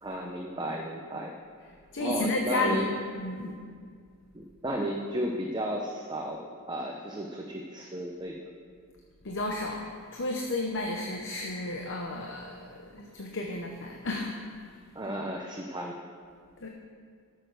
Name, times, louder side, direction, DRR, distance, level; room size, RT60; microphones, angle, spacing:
voice 1, 0.0-1.3 2.0-2.9 3.3-3.5 4.3-8.4 14.9-16.0, equal, 20° right, 0 dB, 0.7 m, -34 dB
voice 2, 1.9-2.8 3.1-3.5 9.2-12.6 12.9-14.4 16.6-16.7, left 2 dB, 55° left, 1 dB, 0.9 m, -32 dB
12.5 x 6.8 x 6.3 m, 2.1 s
head